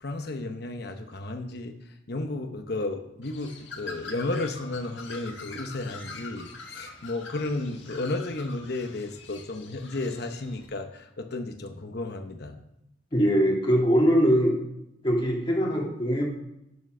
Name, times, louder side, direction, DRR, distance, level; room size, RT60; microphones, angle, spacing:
voice 1, 0.0-1.8 2.1-12.6, left 2 dB, 55° left, 5 dB, 0.9 m, -33 dB
Bird, 3.2-10.7, left 3 dB, 70° left, 1.6 m, -44 dB
voice 2, 13.1-14.6 15.0-16.2, equal, 25° left, -2 dB, 2.0 m, -22 dB
8.7 x 6.9 x 6.2 m, 0.83 s
head